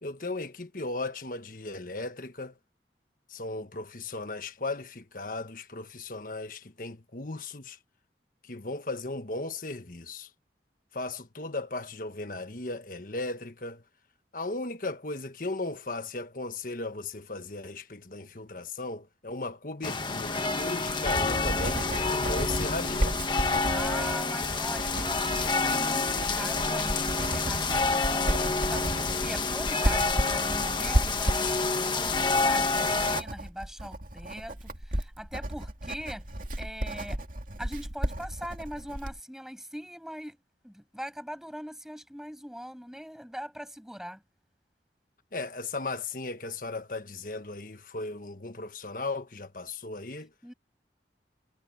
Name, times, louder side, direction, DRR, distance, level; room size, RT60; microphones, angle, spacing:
voice 1, 0.0-2.5 3.3-7.8 8.4-10.3 10.9-13.8 14.3-23.2 45.3-50.3, left 2 dB, 50° left, 1.4 m, -36 dB
sound 1, 19.8-33.2, left 3 dB, 25° left, 1.4 m, -28 dB
Writing, 20.4-39.2, right 1 dB, 50° right, 2.5 m, -33 dB
voice 2, 23.7-36.3 36.6-37.2 37.6-40.4 40.6-44.2 50.4-50.5, equal, 5° right, 7.2 m, -41 dB
head